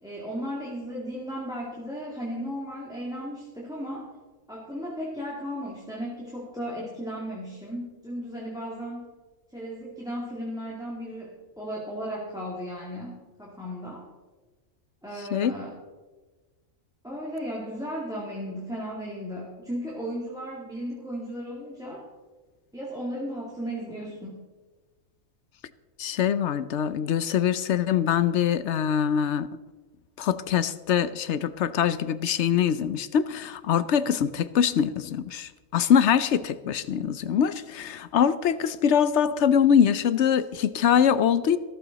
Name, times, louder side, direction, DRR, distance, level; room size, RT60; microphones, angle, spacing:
voice 1, 0.0-4.1 4.5-9.1 9.5-14.1 15.0-15.8 17.0-22.1 22.7-24.4, equal, 5° right, -4 dB, 2.2 m, -35 dB
voice 2, 26.0-29.5 30.2-41.6, left 8 dB, 65° left, 15 dB, 0.9 m, -23 dB
15.0 x 14.0 x 4.0 m, 1.3 s
omnidirectional pair, 1.3 m